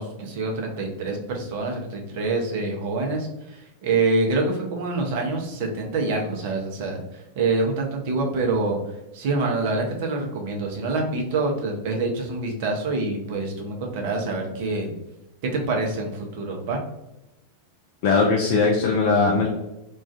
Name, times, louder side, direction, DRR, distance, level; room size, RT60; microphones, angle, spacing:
voice 1, 0.0-7.0 7.4-8.8 9.1-14.9 15.5-16.8, right 3 dB, 50° right, 1 dB, 0.6 m, -26 dB
voice 2, 18.0-19.5, left 4 dB, 45° left, -1 dB, 0.3 m, -19 dB
2.3 x 2.3 x 2.4 m, 0.94 s
figure-of-eight pair, 90°, 0 cm